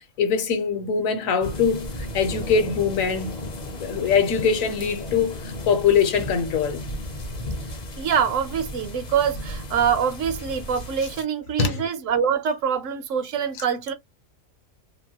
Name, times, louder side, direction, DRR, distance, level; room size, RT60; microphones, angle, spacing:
voice 1, 0.2-3.4 3.7-6.9 11.6-11.8, left 6 dB, 75° left, 1.1 m, -23 dB
sound 1, 1.4-11.2, left 1 dB, 45° left, 0.6 m, -35 dB
voice 2, 8.0-13.9, right 7 dB, 70° right, 1.0 m, -24 dB
2.9 x 2.2 x 2.8 m
omnidirectional pair, 1.4 m